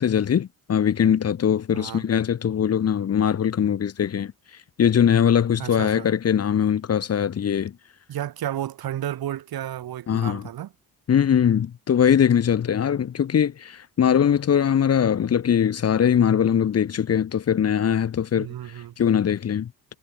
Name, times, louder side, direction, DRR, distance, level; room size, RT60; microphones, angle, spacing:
voice 1, 0.0-4.3 4.8-7.7 10.1-10.5 11.1-18.5 19.0-20.0, left 8 dB, 40° left, 0.8 m, -21 dB
voice 2, 1.7-2.1 5.6-6.1 8.1-10.7 18.4-18.9, right 11 dB, 65° right, 2.0 m, -32 dB
cardioid pair, 80°, 39 cm